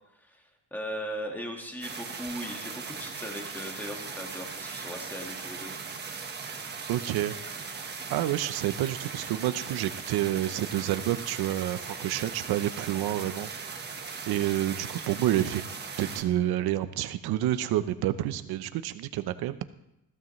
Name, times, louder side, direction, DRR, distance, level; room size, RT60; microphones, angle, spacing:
voice 1, 0.2-5.7, equal, 5° left, 1 dB, 1.8 m, -38 dB
sound 1, 1.8-16.2, right 5 dB, 25° right, 1.3 m, -39 dB
voice 2, 6.9-7.3 8.1-13.5 14.3-15.6 16.0-19.6, right 13 dB, 70° right, 12 dB, 0.8 m, -29 dB
20.5 x 15.0 x 3.2 m, 0.89 s
cardioid pair, 175°, 39 cm